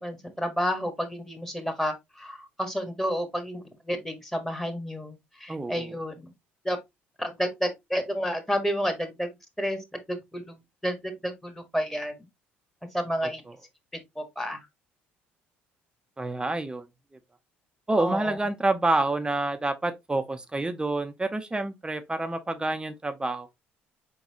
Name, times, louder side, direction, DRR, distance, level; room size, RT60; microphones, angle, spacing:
voice 1, 0.0-6.3 6.6-6.8 7.2-9.3 9.6-9.8 10.1-10.6 10.8-12.1 12.9-13.4 14.2-14.6 18.0-18.4, equal, 5° left, 1.5 m, -30 dB
voice 2, 5.5-5.9 13.5-13.6 16.2-16.9 17.9-23.5, right 2 dB, 15° right, 0.7 m, -28 dB
4.6 x 3.9 x 2.8 m
hypercardioid pair, 55°, 6 cm